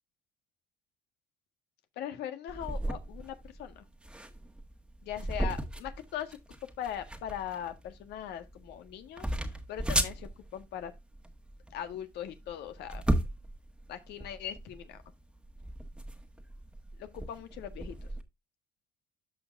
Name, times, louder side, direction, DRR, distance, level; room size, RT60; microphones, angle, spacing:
voice 1, 1.9-3.8 5.0-6.4 6.8-10.9 11.7-13.0 13.9-15.0 17.0-18.1, left 10 dB, 80° left, 1.6 m, -40 dB
sound 1, 2.5-18.2, right 1 dB, 5° right, 1.5 m, -36 dB
13.5 x 5.2 x 2.5 m
cardioid pair, 110°, 17 cm